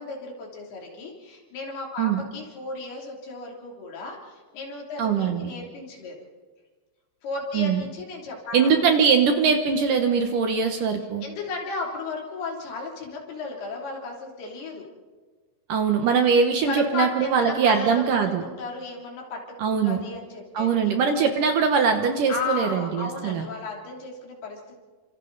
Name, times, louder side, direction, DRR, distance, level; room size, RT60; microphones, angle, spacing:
voice 1, 0.0-6.2 7.2-9.0 11.2-14.9 16.7-18.0 18.4-20.9 22.3-24.8, left 3 dB, 70° left, -1 dB, 5.1 m, -35 dB
voice 2, 5.0-5.5 7.5-7.8 8.5-11.2 15.7-18.4 19.6-20.0 20.5-23.5, right 6 dB, 65° right, 5 dB, 2.4 m, -22 dB
28.5 x 26.0 x 4.0 m, 1.4 s
omnidirectional pair, 4.7 m